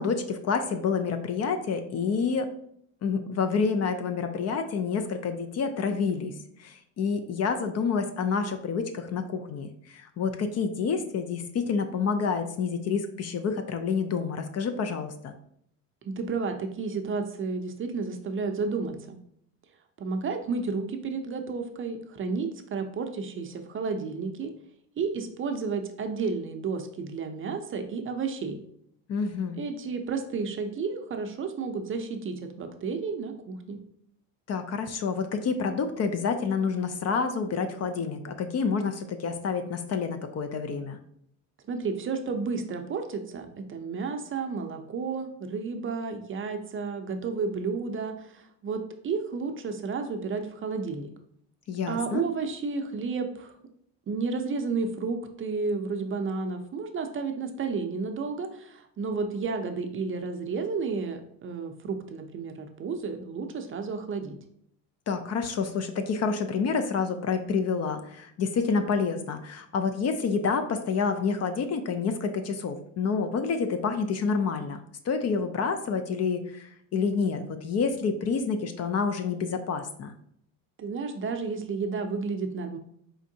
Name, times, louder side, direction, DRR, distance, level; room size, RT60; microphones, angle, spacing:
voice 1, 0.0-2.5 3.0-6.3 6.6-15.3 29.1-29.6 34.5-41.0 51.7-52.2 65.1-74.8 75.0-80.1, left 5 dB, 40° left, 7 dB, 0.5 m, -28 dB
voice 2, 16.0-19.2 20.0-24.5 25.0-28.6 29.6-33.8 41.7-51.1 51.9-53.6 54.1-64.4 80.8-82.8, right 4 dB, 35° right, 6 dB, 0.5 m, -32 dB
4.4 x 3.6 x 2.7 m, 0.69 s
supercardioid pair, 100°, 39 cm